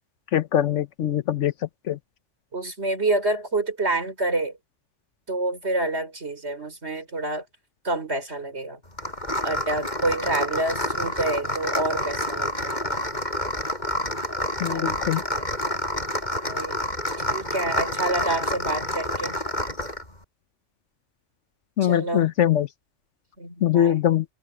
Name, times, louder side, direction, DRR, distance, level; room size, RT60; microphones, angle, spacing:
voice 1, 0.3-1.5 1.9-2.0 14.6-15.2 21.8-22.7 23.6-24.2, left 11 dB, 75° left, 1.1 m, -22 dB
voice 2, 2.5-4.6 5.3-7.4 7.8-8.8 9.4-13.0 14.7-15.0 16.4-16.8 17.3-19.4 21.8-22.3 23.4-24.0, right 2 dB, 60° right, 5.0 m, -28 dB
sound 1, 9.0-20.1, left 1 dB, 35° left, 6.3 m, -28 dB
omnidirectional pair, 1.3 m